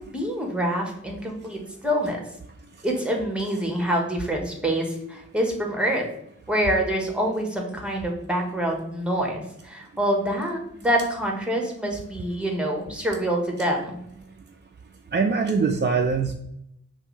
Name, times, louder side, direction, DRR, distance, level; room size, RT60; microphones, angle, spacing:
voice 1, 0.1-2.2 2.8-6.1 6.5-14.0, equal, 5° right, 1 dB, 1.4 m, -26 dB
voice 2, 15.1-16.3, right 5 dB, 35° right, 3 dB, 0.4 m, -22 dB
5.8 x 2.7 x 3.3 m, 0.77 s
cardioid pair, 50°, 31 cm